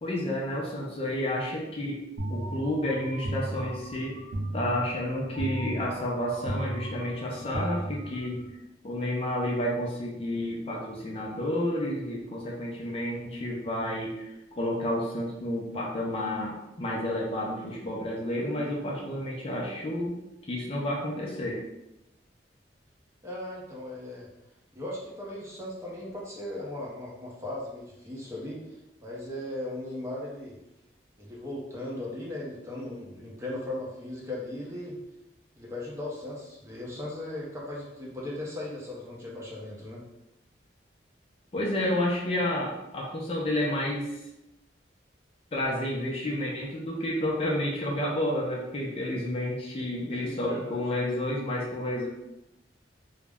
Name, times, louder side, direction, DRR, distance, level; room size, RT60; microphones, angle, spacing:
voice 1, 0.0-4.2 4.5-8.4 8.8-20.2 20.5-21.6 41.5-44.2 45.5-52.1, left 1 dB, 30° left, -3 dB, 0.4 m, -30 dB
sound 1, 2.2-8.5, right 1 dB, 80° right, 0.5 m, -36 dB
voice 2, 23.2-24.3 24.7-30.6 31.2-35.0 35.6-40.0 50.2-50.8, left 1 dB, 15° right, -5 dB, 0.6 m, -37 dB
2.3 x 2.0 x 3.4 m, 0.89 s
head